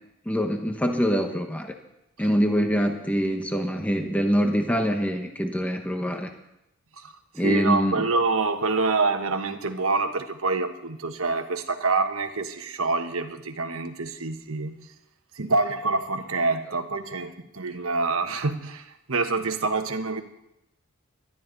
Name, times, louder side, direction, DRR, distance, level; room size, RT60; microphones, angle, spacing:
voice 1, 0.3-1.7 2.2-6.3 7.3-8.0, equal, 5° left, 4 dB, 0.9 m, -24 dB
voice 2, 7.4-14.8 15.4-20.2, right 3 dB, 75° right, 7 dB, 1.2 m, -26 dB
17.5 x 12.5 x 4.0 m, 0.85 s
head